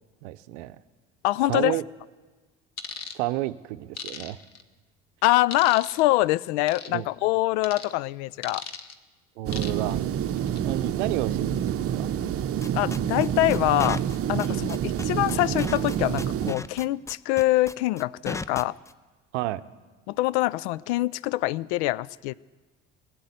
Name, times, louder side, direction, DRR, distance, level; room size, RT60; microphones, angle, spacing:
voice 1, 0.2-0.8 1.5-1.8 3.1-4.4 6.9-7.1 9.4-10.0 10.6-12.1 14.4-14.6 19.3-19.6, right 16 dB, 70° right, 13 dB, 0.7 m, -31 dB
voice 2, 1.2-1.8 5.2-8.7 12.7-14.0 14.3-14.8 15.0-18.8 20.1-22.3, left 17 dB, 65° left, 22 dB, 0.5 m, -24 dB
sound 1, 2.8-3.2 4.0-4.6 5.5-6.0 6.7-6.9 7.6-7.9 8.4-8.9 9.5-9.9 10.4-10.6, left 7 dB, 45° left, 1.1 m, -37 dB
Air conditioner unit, 9.5-16.5, right 9 dB, 40° right, 0.8 m, -28 dB
sound 2, 12.6-18.9, left 3 dB, 10° left, 0.5 m, -35 dB
19.5 x 7.7 x 8.1 m, 1.3 s
hypercardioid pair, 60°, 37 cm